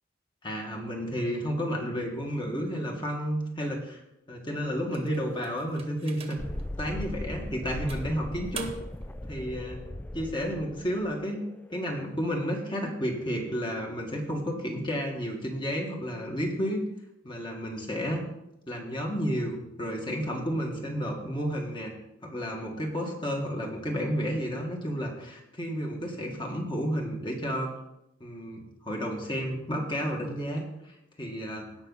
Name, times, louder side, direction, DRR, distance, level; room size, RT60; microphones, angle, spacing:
voice 1, 0.4-4.0 4.3-6.4 6.8-8.7 9.3-9.8 10.1-11.4 11.7-16.8 17.2-18.3 18.7-21.9 22.2-27.7 28.2-30.6 31.2-31.7, equal, 25° left, 1 dB, 1.9 m, -31 dB
sound 1, 4.9-6.6 7.2-7.3 7.9-9.1, right 5 dB, 30° right, 1.2 m, -44 dB
Thunderstorm, 6.4-13.8, left 1 dB, 10° left, 0.4 m, -39 dB
17.0 x 5.9 x 4.1 m, 0.86 s
head